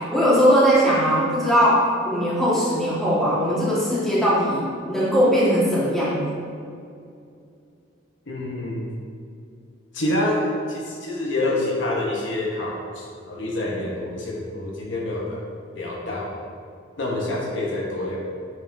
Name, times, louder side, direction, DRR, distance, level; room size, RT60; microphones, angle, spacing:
voice 1, 0.0-6.3, equal, ahead, -9 dB, 1.5 m, -20 dB
voice 2, 8.3-8.9 9.9-15.4 15.8-16.4 17.0-18.2, left 1 dB, 65° left, -3 dB, 0.9 m, -27 dB
7.6 x 5.4 x 2.6 m, 2.4 s
head